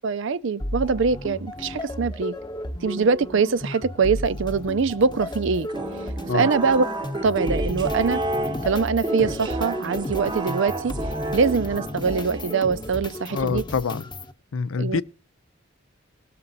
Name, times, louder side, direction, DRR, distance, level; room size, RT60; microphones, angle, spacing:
voice 1, 0.0-2.3 2.8-5.7 6.3-6.9 7.2-8.2 8.6-11.0 11.3-13.6 14.8-15.0, right 5 dB, 65° right, 0.5 m, -23 dB
sound 1, 0.6-14.3, left 1 dB, 20° left, 0.9 m, -33 dB
sound 2, 5.7-13.1, right 2 dB, 20° right, 0.7 m, -31 dB
voice 2, 13.3-14.0 14.5-15.0, left 5 dB, 75° left, 0.5 m, -26 dB
19.0 x 6.8 x 4.0 m
head